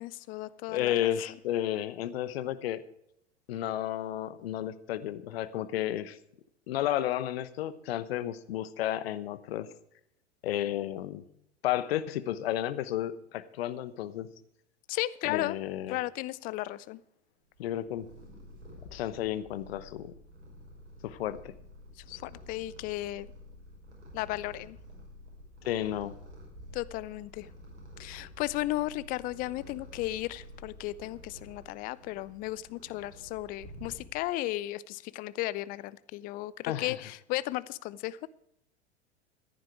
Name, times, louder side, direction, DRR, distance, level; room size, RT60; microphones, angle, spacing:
voice 1, 0.0-1.1 14.9-15.6 15.9-17.0 22.0-23.3 24.1-24.8 26.7-27.5 28.0-38.3, left 17 dB, 25° left, 0.4 m, -35 dB
voice 2, 0.7-2.8 3.5-6.2 6.7-9.7 10.4-11.2 11.6-14.3 15.3-16.0 17.6-18.1 18.9-20.1 21.0-21.5 25.6-26.1 36.7-37.0, left 12 dB, 60° left, 1.0 m, -32 dB
Purr, 17.5-34.4, equal, 75° right, 5.8 m, -50 dB
14.5 x 10.5 x 4.8 m
figure-of-eight pair, 90°, 34 cm